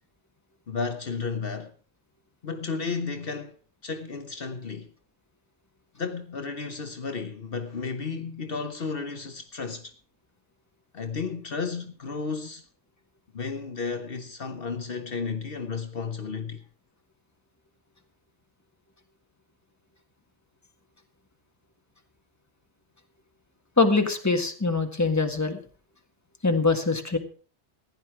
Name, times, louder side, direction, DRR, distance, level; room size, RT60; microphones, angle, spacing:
voice 1, 0.7-1.7 2.4-3.6 3.8-4.9 6.0-9.9 10.9-12.6 13.3-16.6, left 5 dB, 60° left, 1.2 m, -33 dB
voice 2, 23.8-25.6 26.4-27.2, left 3 dB, 15° left, 1.7 m, -23 dB
15.5 x 11.0 x 4.8 m
omnidirectional pair, 1.1 m